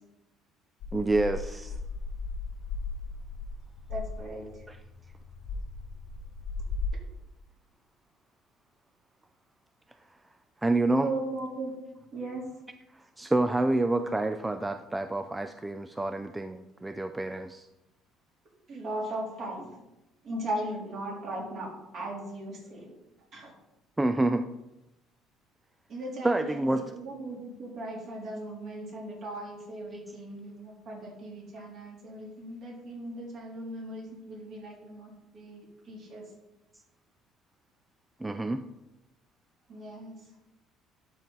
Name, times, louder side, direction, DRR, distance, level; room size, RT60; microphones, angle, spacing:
sound 1, 0.8-6.9, left 4 dB, 65° left, 0.8 m, -37 dB
voice 1, 0.9-1.8 4.7-4.8 10.6-11.1 12.9-17.7 24.0-24.5 26.2-26.9 29.9-30.0 38.2-38.6, right 2 dB, 10° right, 8 dB, 0.3 m, -28 dB
voice 2, 3.9-4.5 11.0-11.7 12.1-12.5 18.7-19.7 20.2-22.9 23.3-23.5 25.9-36.2 39.7-40.1, right 1 dB, 50° right, -3 dB, 3.3 m, -38 dB
12.0 x 4.4 x 3.9 m, 0.94 s
cardioid pair, 125°, 0 cm